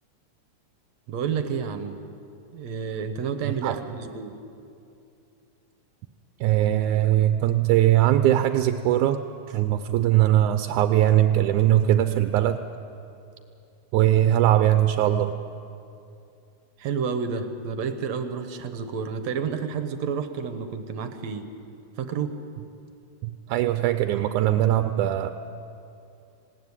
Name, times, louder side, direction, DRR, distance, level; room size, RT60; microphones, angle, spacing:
voice 1, 1.1-2.0 2.5-4.4 16.8-21.5 22.0-22.4, right 6 dB, 70° right, 8 dB, 2.2 m, -30 dB
voice 2, 3.5-3.8 6.4-12.6 13.9-15.3 23.2-25.3, right 12 dB, 85° right, 9 dB, 2.1 m, -21 dB
20.0 x 16.5 x 9.7 m, 2.6 s
omnidirectional pair, 3.4 m